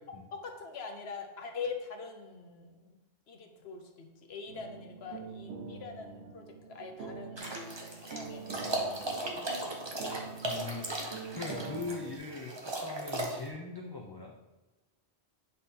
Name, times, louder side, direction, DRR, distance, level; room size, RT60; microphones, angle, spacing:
voice 1, 0.3-3.0 3.3-7.5 7.9-10.0, left 5 dB, 75° left, 5 dB, 1.0 m, -44 dB
sound 1, 4.5-12.2, right 4 dB, 90° right, 1.1 m, -45 dB
sound 2, 7.4-13.5, right 2 dB, 25° right, 0.9 m, -37 dB
voice 2, 10.4-14.3, left 4 dB, 30° left, 0 dB, 0.5 m, -41 dB
7.8 x 3.7 x 4.2 m, 1.1 s
omnidirectional pair, 1.1 m